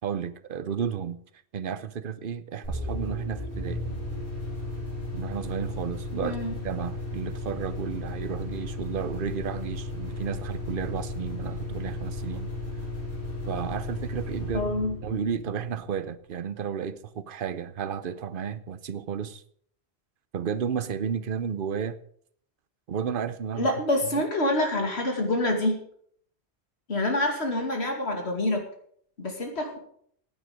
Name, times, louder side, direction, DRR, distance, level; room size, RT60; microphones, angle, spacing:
voice 1, 0.0-1.2 1.5-3.8 5.1-12.5 13.5-14.7 15.0-19.4 20.3-22.0 22.9-23.7 24.1-24.2, right 7 dB, 55° right, 13 dB, 0.9 m, -32 dB
sound 1, 2.6-16.1, left 2 dB, 40° left, 4.8 m, -35 dB
voice 2, 6.2-6.6 14.5-15.0 23.6-25.8 26.9-28.6 29.2-29.8, left 1 dB, 80° left, 3 dB, 2.7 m, -26 dB
15.5 x 9.1 x 5.1 m, 0.64 s
omnidirectional pair, 1.1 m